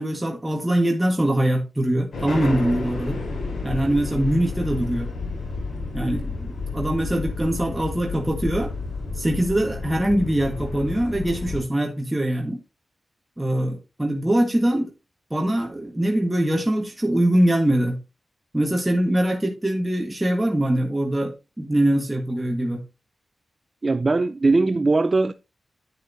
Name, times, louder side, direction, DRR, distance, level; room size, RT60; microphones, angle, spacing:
voice 1, 0.0-3.2 3.6-5.1 5.9-8.7 9.1-12.6 13.4-14.9 15.3-18.0 18.5-22.8, right 1 dB, 15° right, 1.5 m, -23 dB
sound 1, 2.1-11.6, left 3 dB, 85° left, 3.9 m, -31 dB
voice 2, 23.8-25.3, right 3 dB, 40° right, 0.5 m, -20 dB
9.1 x 7.7 x 2.7 m
cardioid pair, 50°, 0 cm